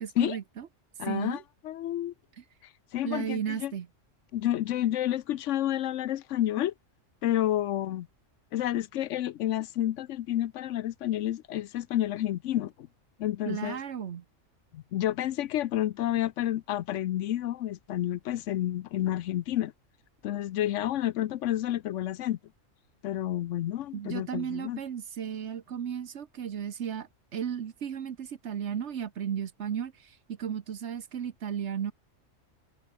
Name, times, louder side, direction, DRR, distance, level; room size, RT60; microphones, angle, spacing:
voice 1, 0.0-0.7 1.0-1.4 3.0-3.9 13.5-14.2 23.9-31.9, right 8 dB, 65° right, 1.2 m, -34 dB
voice 2, 1.0-2.1 2.9-3.7 4.3-6.7 7.2-8.1 8.5-12.7 13.2-13.8 14.7-19.7 20.2-22.4 23.0-24.8, left 12 dB, 75° left, 0.9 m, -30 dB
omnidirectional pair, 1.3 m